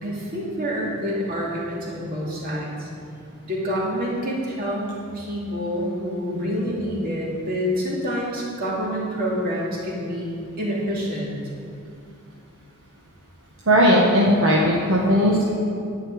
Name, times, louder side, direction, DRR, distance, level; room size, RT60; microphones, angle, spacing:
voice 1, 0.0-2.9 3.4-11.3, equal, 45° right, -5 dB, 2.8 m, -27 dB
voice 2, 13.7-15.5, equal, 60° right, -5 dB, 1.4 m, -17 dB
11.0 x 5.6 x 8.8 m, 2.5 s
head